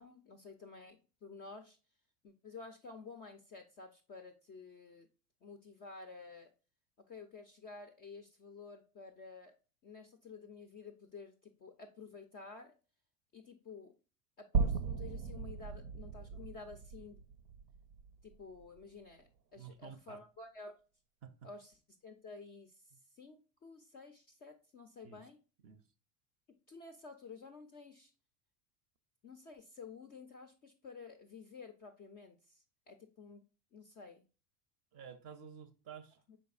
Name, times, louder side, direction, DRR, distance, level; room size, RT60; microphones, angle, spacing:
voice 1, 0.0-1.8 2.2-5.1 5.4-6.5 7.1-9.5 9.8-12.7 13.3-13.9 14.4-17.2 18.2-20.7 21.4-21.7 22.0-22.8 23.1-25.4 26.7-28.1 29.2-33.4 33.7-34.2 36.3-36.4, left 4 dB, 20° left, 0.3 m, -52 dB
sound 1, 14.5-18.8, right 5 dB, 80° right, 0.7 m, -37 dB
voice 2, 19.6-20.2 21.2-21.5 22.9-23.0 25.0-25.3 25.6-25.8 34.9-36.2, right 7 dB, 30° right, 0.5 m, -51 dB
5.1 x 4.1 x 2.3 m
figure-of-eight pair, 80°, 49 cm